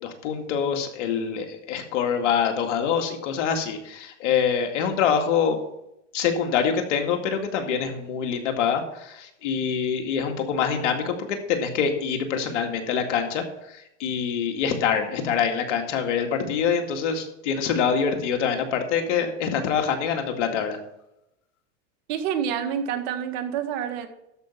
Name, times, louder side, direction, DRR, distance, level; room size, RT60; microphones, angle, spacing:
voice 1, 0.0-5.6 6.1-20.8, left 7 dB, 75° left, 5 dB, 2.2 m, -25 dB
voice 2, 22.1-24.1, right 8 dB, 60° right, 8 dB, 1.7 m, -28 dB
12.5 x 5.5 x 6.1 m, 0.84 s
supercardioid pair, 120°, 36 cm